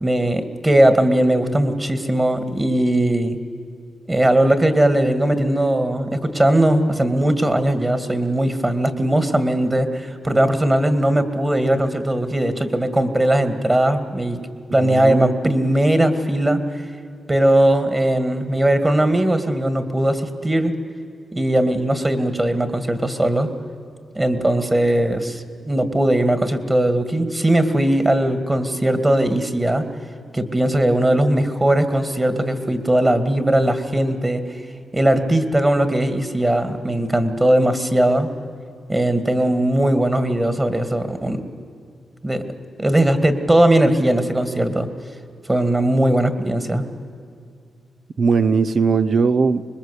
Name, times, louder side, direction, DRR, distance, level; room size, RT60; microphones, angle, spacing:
voice 1, 0.0-3.4 4.1-14.4 14.7-16.6 17.3-20.8 21.3-23.5 24.1-29.9 30.3-34.4 34.9-38.3 38.9-41.4 42.2-42.4 42.8-44.9 45.5-46.9, right 1 dB, 20° right, 2.2 m, -19 dB
voice 2, 14.8-15.4 48.2-49.7, right 5 dB, 55° right, 0.8 m, -19 dB
25.5 x 21.5 x 8.3 m
cardioid pair, 80°, 0 cm